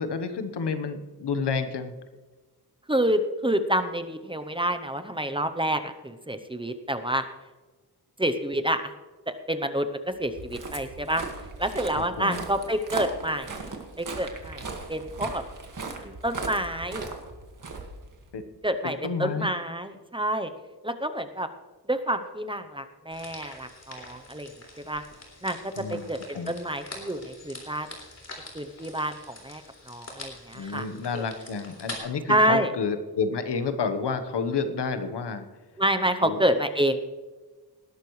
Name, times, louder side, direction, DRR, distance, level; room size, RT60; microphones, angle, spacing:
voice 1, 0.0-1.9 11.9-12.4 18.3-18.4 18.8-19.5 25.8-26.5 30.5-35.4 36.2-36.4, left 5 dB, 85° left, 9 dB, 1.2 m, -30 dB
voice 2, 2.9-7.2 8.2-8.9 9.5-9.9 10.2-11.2 11.6-13.5 14.0-14.6 14.9-15.4 16.0-17.1 18.6-20.5 20.8-21.5 21.9-24.5 24.9-25.0 25.4-25.6 25.9-27.9 28.5-29.6 29.9-30.8 31.1-31.2 32.3-32.7 35.8-37.0, right 1 dB, 15° right, 8 dB, 0.7 m, -28 dB
Walk footsteps, 10.2-18.5, right 3 dB, 50° right, 1.9 m, -38 dB
sound 1, 23.1-32.0, left 2 dB, 40° left, 3.4 m, -44 dB
19.0 x 11.5 x 3.2 m, 1.3 s
wide cardioid pair, 150°, 40 cm